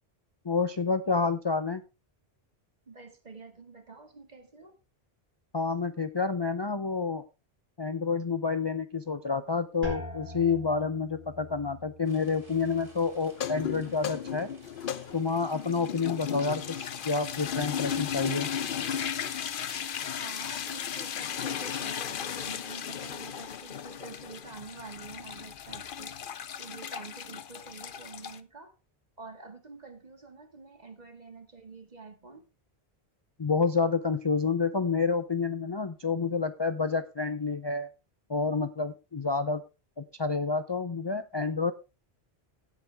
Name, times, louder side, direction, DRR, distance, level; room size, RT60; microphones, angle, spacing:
voice 1, 0.4-1.8 5.5-7.2 7.8-14.5 15.1-18.5 33.4-37.9 38.3-39.6 40.0-41.7, left 4 dB, 30° left, 10 dB, 0.5 m, -29 dB
voice 2, 2.9-4.7 20.0-26.2 26.6-28.7 29.2-32.5, right 4 dB, 40° right, 7 dB, 1.9 m, -47 dB
sound 1, 9.8-15.5 15.8-16.5 17.0-17.4, left 1 dB, 10° right, 4.9 m, -45 dB
sound 2, 12.0-20.9, right 1 dB, 55° right, 3.7 m, -55 dB
sound 3, 13.3-28.4, left 8 dB, 55° left, 0.8 m, -35 dB
15.5 x 8.3 x 3.4 m, 0.28 s
omnidirectional pair, 1.1 m